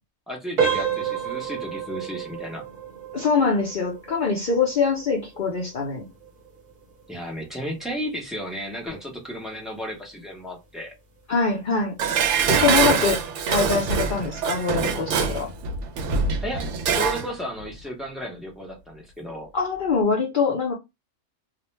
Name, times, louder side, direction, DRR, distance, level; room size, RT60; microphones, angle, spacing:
voice 1, 0.3-2.7 7.1-10.9 16.4-19.5, equal, ahead, 0.4 m, -34 dB
sound 1, 0.6-11.2 11.6-11.8 12.4-12.5 13.0-13.2, right 7 dB, 45° right, 0.6 m, -32 dB
voice 2, 3.1-6.1 11.3-12.0 12.5-13.2 13.5-15.5 19.5-20.7, left 5 dB, 50° left, 0.7 m, -23 dB
Dishes pots and pans, 12.0-17.3 17.6-17.7, right 6 dB, 70° right, 0.8 m, -24 dB
2.4 x 2.1 x 3.0 m
omnidirectional pair, 1.4 m